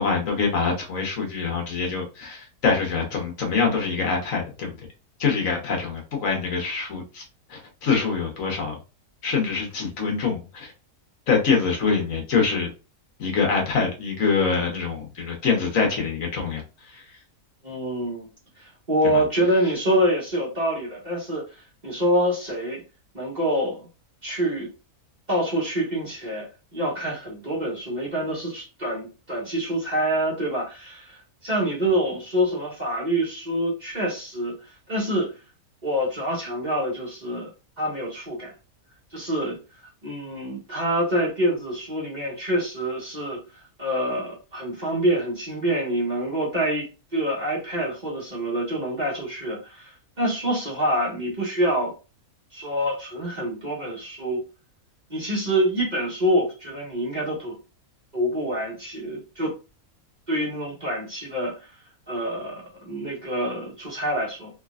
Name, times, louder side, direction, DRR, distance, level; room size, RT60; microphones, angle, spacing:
voice 1, 0.0-4.8 5.2-7.2 7.5-8.8 9.2-10.7 11.3-12.7 13.2-17.2 19.1-19.2, left 5 dB, 65° left, 1 dB, 1.4 m, -25 dB
voice 2, 17.6-18.3 18.6-22.8 23.1-23.9 24.2-24.7 25.3-26.5 26.7-35.3 35.8-37.5 37.8-38.5 39.1-39.6 40.0-43.4 43.8-51.9 52.5-54.4 55.1-57.6 58.1-59.5 60.3-61.7 62.1-64.5, equal, 30° right, -4 dB, 1.6 m, -26 dB
3.7 x 3.3 x 2.4 m, 0.31 s
omnidirectional pair, 1.5 m